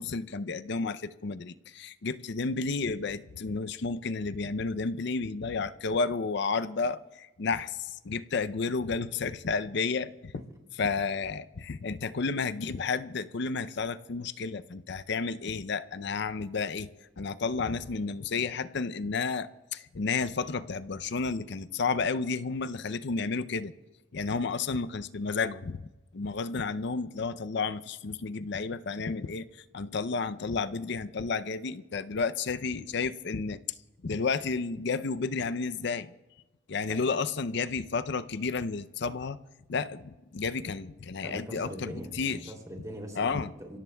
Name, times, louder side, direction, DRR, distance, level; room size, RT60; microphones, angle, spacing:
voice 1, 0.0-10.3 10.8-16.9 17.2-23.7 24.1-25.8 26.1-33.6 34.0-36.1 36.7-39.4 39.7-42.5 43.2-43.5, left 4 dB, 65° left, 0.6 m, -31 dB
voice 2, 41.2-43.8, equal, 20° right, 2.8 m, -42 dB
30.0 x 17.0 x 2.3 m
head